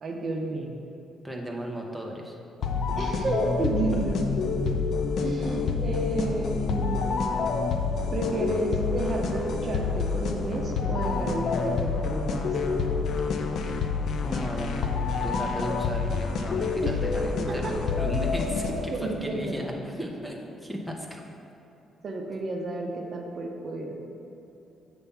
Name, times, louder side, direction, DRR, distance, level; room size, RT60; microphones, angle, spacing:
voice 1, 0.0-0.8 3.0-4.1 5.2-7.2 8.1-12.5 16.8-17.1 17.5-17.7 18.9-19.7 22.0-23.9, right 2 dB, 50° right, 1 dB, 0.8 m, -31 dB
voice 2, 1.2-2.3 3.9-4.0 14.2-21.2, equal, ahead, 0 dB, 0.8 m, -35 dB
sound 1, 2.6-19.1, left 4 dB, 65° left, 0.5 m, -28 dB
7.0 x 3.4 x 5.6 m, 2.9 s
cardioid pair, 90°, 0 cm